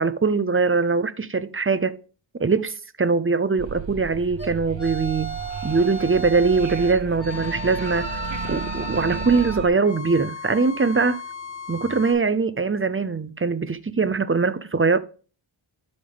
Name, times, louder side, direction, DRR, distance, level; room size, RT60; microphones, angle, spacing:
voice 1, 0.0-2.0 2.4-8.1 8.5-11.2 11.7-15.0, right 4 dB, 25° right, 0.6 m, -22 dB
sound 1, 3.6-9.7, right 6 dB, 65° right, 1.1 m, -34 dB
sound 2, 4.4-12.1, equal, 55° left, 4.0 m, -35 dB
12.0 x 4.0 x 3.5 m
wide cardioid pair, 85°, 47 cm